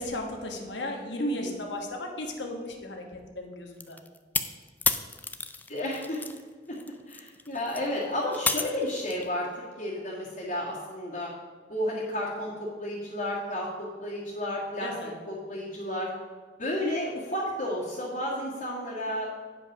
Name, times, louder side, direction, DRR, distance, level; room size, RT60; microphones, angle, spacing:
voice 1, 0.0-3.0 3.4-4.0 14.8-15.1, left 2 dB, 85° left, 2 dB, 1.2 m, -36 dB
voice 2, 1.2-1.6 5.7-6.2 6.7-6.8 7.1-11.3 11.7-13.7 14.0-14.9 15.3-16.1 16.6-19.3, left 1 dB, 50° left, -9 dB, 1.8 m, -32 dB
sound 1, 3.8-6.4 6.7-9.3, left 4 dB, 10° left, 0.4 m, -31 dB
9.1 x 5.2 x 6.0 m, 1.5 s
head